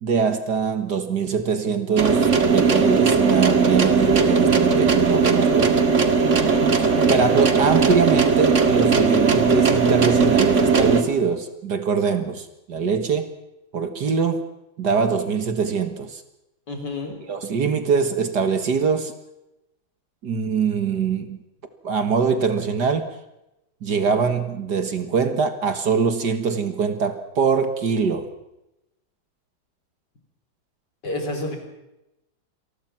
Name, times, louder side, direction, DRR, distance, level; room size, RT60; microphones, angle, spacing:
voice 1, 0.0-5.7 7.0-13.3 13.7-14.4 14.8-16.2 17.3-19.1 20.2-21.4 21.8-23.1 23.8-28.3, right 5 dB, 55° right, 9 dB, 2.1 m, -23 dB
sound 1, 2.0-11.0, right 5 dB, 35° right, 2.1 m, -18 dB
voice 2, 6.2-6.7 16.7-17.2 31.0-31.6, left 2 dB, 55° left, 4 dB, 4.8 m, -30 dB
27.0 x 20.0 x 5.9 m, 0.91 s
omnidirectional pair, 2.2 m